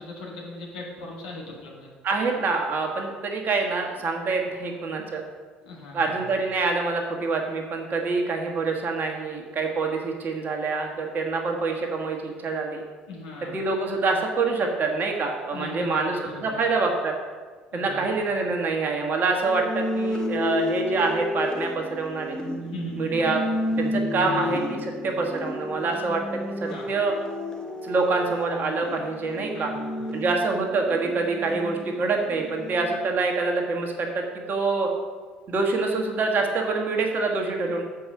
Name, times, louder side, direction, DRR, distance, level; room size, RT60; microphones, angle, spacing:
voice 1, 0.0-1.9 5.6-6.3 13.1-13.6 15.5-16.6 17.7-18.2 22.7-23.3 24.2-24.5 26.7-26.9 29.5-30.1 31.5-31.6, left 2 dB, 75° left, -3 dB, 1.9 m, -39 dB
voice 2, 2.0-5.2 5.9-12.8 13.5-17.1 17.7-22.4 23.0-23.4 23.8-26.2 26.6-27.2 27.8-29.7 30.1-34.9 35.5-37.8, right 3 dB, 45° right, 2 dB, 1.4 m, -26 dB
sound 1, 19.5-33.2, left 1 dB, 15° left, 1.2 m, -31 dB
6.9 x 4.9 x 6.4 m, 1.5 s
figure-of-eight pair, 55°, 5 cm